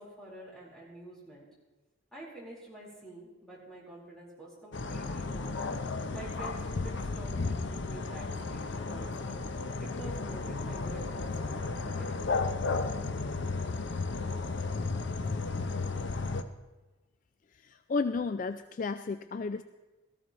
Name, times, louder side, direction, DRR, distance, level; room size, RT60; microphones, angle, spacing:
voice 1, 0.0-1.5 2.1-5.7 6.1-8.6 8.9-9.4 9.8-12.4, right 2 dB, ahead, -6 dB, 4.4 m, -48 dB
sound 1, 4.7-16.4, left 3 dB, 60° left, 0.7 m, -34 dB
voice 2, 17.5-19.6, left 4 dB, 40° left, 10 dB, 0.3 m, -33 dB
17.0 x 14.0 x 3.2 m, 1.1 s
head